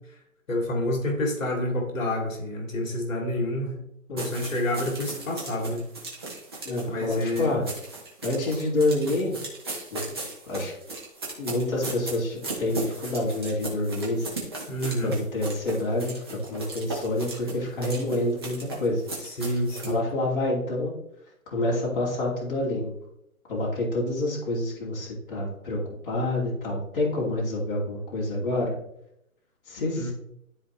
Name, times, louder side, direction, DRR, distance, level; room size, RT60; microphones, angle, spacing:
voice 1, 0.5-3.8 4.1-5.8 6.9-7.5 14.7-15.1 19.2-20.0 30.0-30.1, left 1 dB, 65° left, 1 dB, 2.7 m, -28 dB
sound 1, 4.2-19.9, right 2 dB, 15° right, 1.1 m, -37 dB
voice 2, 6.6-7.6 8.2-9.4 9.9-10.1 10.5-10.7 11.4-14.4 15.0-19.0 19.8-20.9 21.5-22.9 23.5-28.7 29.7-30.1, left 1 dB, 35° left, -5 dB, 2.6 m, -27 dB
13.0 x 4.5 x 3.2 m, 0.77 s
hypercardioid pair, 175°, 43 cm